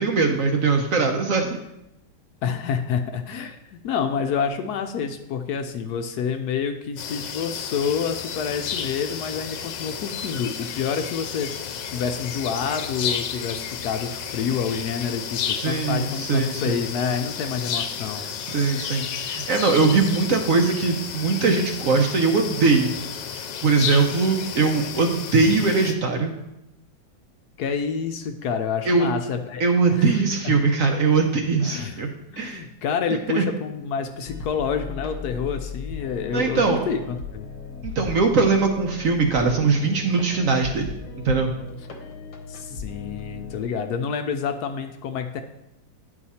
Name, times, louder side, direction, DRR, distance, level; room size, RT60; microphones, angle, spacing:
voice 1, 0.0-1.6 15.6-16.8 18.5-23.0 23.6-26.3 28.9-29.1 29.6-32.1 32.4-32.6 33.3-33.4 36.3-36.9 37.8-40.9 41.2-41.5, right 4 dB, 60° right, 3 dB, 0.9 m, -21 dB
voice 2, 2.4-18.3 27.6-29.6 29.9-30.0 31.6-32.0 32.3-37.5 42.5-45.4, left 6 dB, 70° left, 7 dB, 1.0 m, -28 dB
sound 1, 7.0-25.9, left 8 dB, 90° left, 1.3 m, -32 dB
sound 2, 34.2-43.6, left 4 dB, 55° left, 1.2 m, -37 dB
9.7 x 4.7 x 4.2 m, 0.88 s
omnidirectional pair, 1.9 m